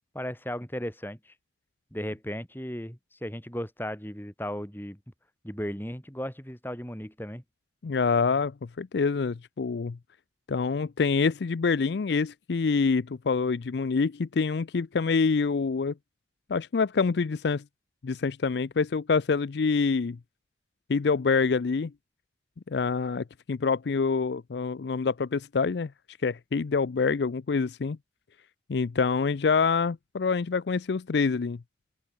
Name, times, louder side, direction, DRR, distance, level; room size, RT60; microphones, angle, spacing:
voice 1, 0.1-1.3 1.9-5.0 5.4-7.4, equal, 10° left, 6.6 m, -36 dB
voice 2, 7.8-10.0 10.5-15.9 16.5-17.6 18.0-20.2 20.9-21.9 22.7-25.9 26.2-28.0 28.7-31.6, left 5 dB, 70° left, 0.5 m, -26 dB
open air
head